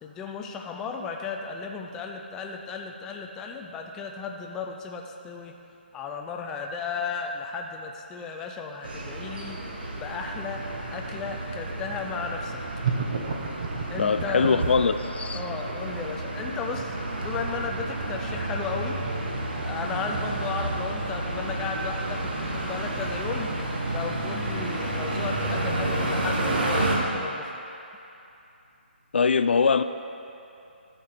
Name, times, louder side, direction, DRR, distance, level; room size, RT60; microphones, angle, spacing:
voice 1, 0.0-5.5 5.9-9.6 10.0-10.6 10.9-12.6 13.9-14.6 15.3-19.0 19.6-23.5 23.9-27.5, left 5 dB, 10° left, 2 dB, 0.3 m, -35 dB
sound 1, 8.8-27.0, right 1 dB, 60° right, 1.6 m, -31 dB
sound 2, 12.8-15.0, right 5 dB, 40° right, 1.1 m, -29 dB
voice 2, 14.0-15.4 29.1-29.8, left 5 dB, 70° left, 11 dB, 0.4 m, -22 dB
12.5 x 6.7 x 4.4 m, 2.8 s
hypercardioid pair, 165°, 6 cm